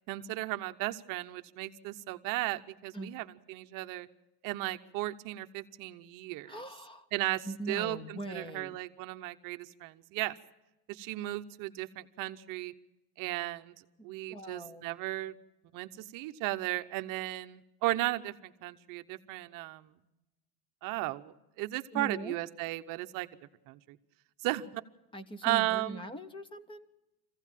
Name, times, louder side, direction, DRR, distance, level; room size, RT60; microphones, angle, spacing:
voice 1, 0.1-4.1 4.4-6.6 7.1-10.3 10.9-12.7 13.2-13.7 14.0-15.3 15.7-19.9 20.8-23.3 23.7-24.0 24.4-24.8 25.4-26.0, right 17 dB, 45° right, 10 dB, 0.8 m, -35 dB
voice 2, 6.5-7.0 7.4-8.8 14.0-15.0 21.9-22.4 25.1-26.9, right 1 dB, 10° left, 15 dB, 0.7 m, -42 dB
24.0 x 16.0 x 7.4 m, 1.0 s
cardioid pair, 165°, 47 cm